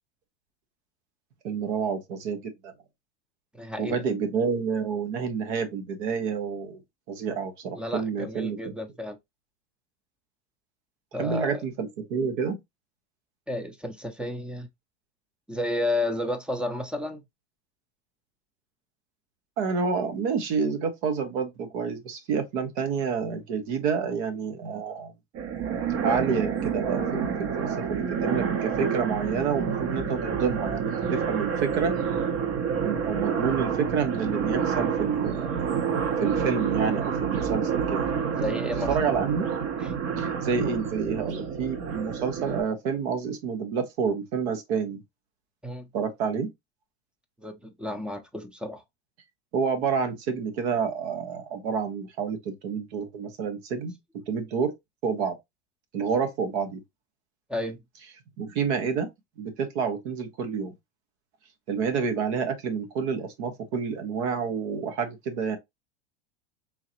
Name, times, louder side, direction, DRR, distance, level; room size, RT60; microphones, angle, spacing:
voice 1, 1.4-2.7 3.8-6.8 7.1-8.7 11.2-12.6 19.6-25.1 26.0-31.9 32.8-35.5 36.2-38.0 38.9-39.5 40.2-45.0 45.9-46.5 49.5-54.0 54.3-54.7 55.0-55.4 55.9-56.8 58.4-59.1 59.4-60.7 61.7-65.6, right 6 dB, 70° right, 1.2 m, -29 dB
voice 2, 3.5-4.0 7.8-9.2 11.1-11.6 13.5-14.7 15.5-17.2 38.3-38.9 39.8-39.9 40.5-40.6 45.6-45.9 47.4-48.8 57.5-57.8, left 1 dB, 5° right, 0.6 m, -32 dB
sound 1, 25.3-42.6, right 7 dB, 40° right, 0.9 m, -28 dB
3.7 x 2.8 x 3.0 m
supercardioid pair, 110°, 34 cm